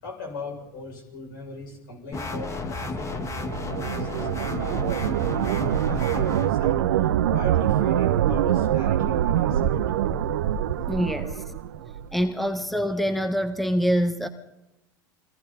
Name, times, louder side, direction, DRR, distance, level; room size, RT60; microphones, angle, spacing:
voice 1, 0.0-3.5 3.8-9.8 12.4-12.5, left 2 dB, 75° left, 7.3 m, -40 dB
sound 1, 2.1-6.5, left 3 dB, 25° left, 2.2 m, -33 dB
sound 2, 2.9-12.1, right 11 dB, 75° right, 1.0 m, -24 dB
voice 2, 10.9-11.4 12.1-14.3, equal, ahead, 1.6 m, -25 dB
29.5 x 21.5 x 4.3 m
hypercardioid pair, 80°, 11 cm